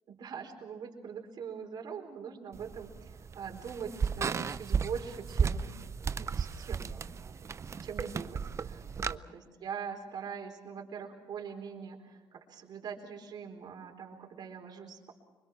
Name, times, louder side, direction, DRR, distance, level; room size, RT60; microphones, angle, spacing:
voice 1, 0.1-5.7 6.2-7.1 7.8-15.1, right 7 dB, 60° right, 2 dB, 4.3 m, -42 dB
sound 1, 2.5-9.2, right 6 dB, 40° right, 0.6 m, -34 dB
25.0 x 23.0 x 6.0 m, 1.3 s
cardioid pair, 100°, 8 cm